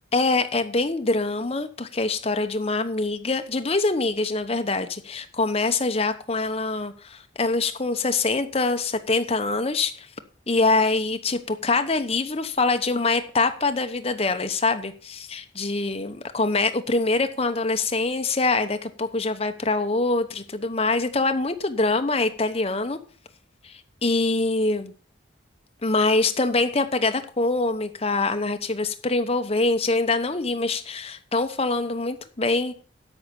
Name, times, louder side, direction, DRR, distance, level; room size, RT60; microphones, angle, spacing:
voice 1, 0.1-10.1 10.5-23.0 23.6-24.9 25.8-32.7, left 3 dB, 30° left, 0.9 m, -24 dB
13.0 x 5.7 x 6.8 m
head